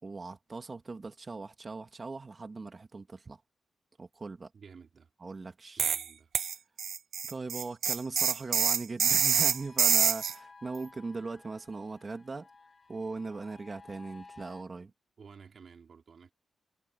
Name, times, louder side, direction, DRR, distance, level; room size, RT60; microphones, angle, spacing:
voice 1, 0.0-3.4 4.0-4.5 5.2-5.9 7.3-12.5 12.9-14.9, right 3 dB, 35° right, 2.4 m, -39 dB
voice 2, 4.5-5.1 5.8-6.3 15.2-16.3, right 6 dB, 60° right, 3.8 m, -53 dB
sound 1, 5.8-6.1 6.3-10.3, right 7 dB, 75° right, 0.3 m, -26 dB
sound 2, 9.4-14.6, left 4 dB, 40° left, 6.2 m, -55 dB
cardioid pair, 85°, 0 cm